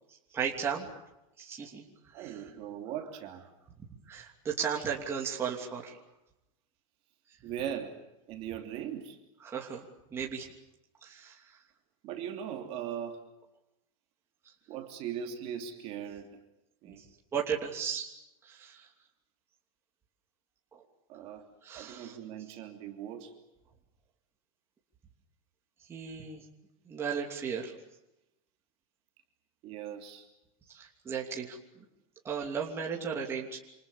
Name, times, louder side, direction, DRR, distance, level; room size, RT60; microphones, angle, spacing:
voice 1, 0.3-0.9 1.4-2.4 4.1-6.0 9.4-10.5 11.0-11.6 14.4-14.5 16.8-16.9 17.3-18.1 18.4-18.9 20.7-20.8 21.6-22.2 25.9-26.5 26.8-27.7 30.7-31.8 32.2-33.6, right 7 dB, 15° right, -1 dB, 2.9 m, -36 dB
voice 2, 2.1-3.5 7.4-8.0 8.3-9.2 12.0-13.3 14.7-16.4 16.8-17.0 21.1-21.4 21.7-23.3 29.6-30.3, right 9 dB, 30° right, 3 dB, 3.0 m, -39 dB
28.5 x 27.5 x 7.1 m, 0.91 s
supercardioid pair, 175°, 18 cm